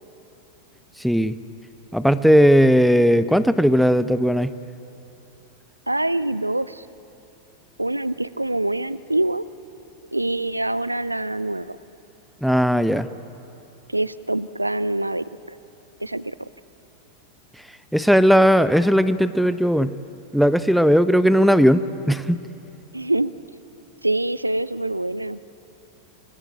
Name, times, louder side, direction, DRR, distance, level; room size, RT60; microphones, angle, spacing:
voice 1, 1.0-1.3 1.9-4.5 12.4-13.1 17.9-19.9 20.3-22.4, equal, ahead, 14 dB, 0.8 m, -17 dB
voice 2, 5.9-6.9 7.8-9.5 10.1-11.8 13.9-15.6 16.0-16.5 22.9-23.3 24.0-25.4, right 1 dB, 85° right, 17 dB, 0.5 m, -25 dB
27.5 x 20.0 x 9.0 m, 2.9 s
figure-of-eight pair, 90°, 0 cm